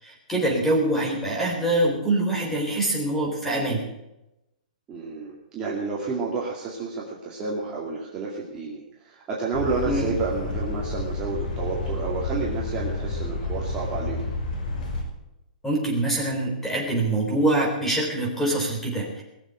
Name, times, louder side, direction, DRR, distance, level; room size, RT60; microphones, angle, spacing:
voice 1, 0.0-3.8 9.8-10.1 15.6-19.2, right 1 dB, 5° left, -1 dB, 3.8 m, -24 dB
voice 2, 4.9-14.3, right 4 dB, 15° right, -4 dB, 2.3 m, -30 dB
sound 1, 9.5-15.0, left 2 dB, 80° left, 5.4 m, -30 dB
19.5 x 7.4 x 8.9 m, 0.91 s
hypercardioid pair, 165°, 5 cm